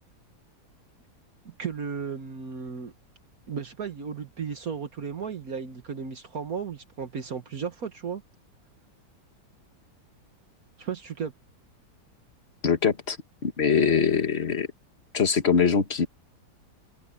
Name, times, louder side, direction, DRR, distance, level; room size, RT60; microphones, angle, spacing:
voice 1, 1.4-2.9 3.5-8.2 10.8-11.3, right 6 dB, 60° right, 1.8 m, -34 dB
voice 2, 12.6-13.2 13.4-14.7 15.1-16.1, left 6 dB, 40° left, 1.7 m, -23 dB
open air
omnidirectional pair, 1.8 m